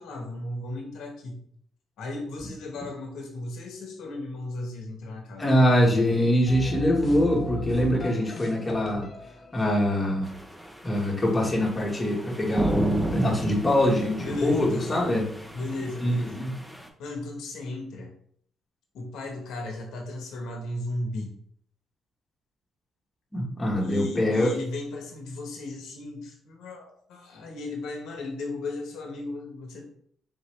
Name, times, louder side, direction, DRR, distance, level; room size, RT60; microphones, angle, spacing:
voice 1, 0.0-1.4 2.0-5.5 14.2-15.2 15.5-16.5 17.0-18.1 18.9-21.3 23.8-29.8, left 2 dB, 80° left, 1 dB, 0.9 m, -35 dB
voice 2, 5.4-9.1 9.5-10.3 10.8-15.2 16.0-16.5 23.3-24.5, equal, 20° left, -3 dB, 1.2 m, -23 dB
sound 1, 6.5-9.7, left 2 dB, 45° left, 0.6 m, -37 dB
sound 2, 10.2-16.9, right 1 dB, 10° right, 0.7 m, -34 dB
4.0 x 3.0 x 3.1 m, 0.62 s
cardioid pair, 90°, 0 cm